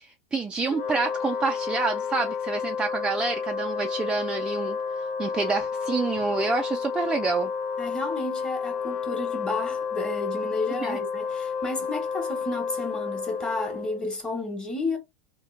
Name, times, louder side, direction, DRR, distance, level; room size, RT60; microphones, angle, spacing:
voice 1, 0.0-4.8 5.2-7.5 10.8-11.0, right 4 dB, 10° right, 0.4 m, -28 dB
Wind instrument woodwind instrument, 0.7-14.1, left 6 dB, 65° left, 1.1 m, -31 dB
voice 2, 7.8-15.0, left 2 dB, 10° left, 1.3 m, -32 dB
3.6 x 3.1 x 3.2 m
supercardioid pair, 145°, 8 cm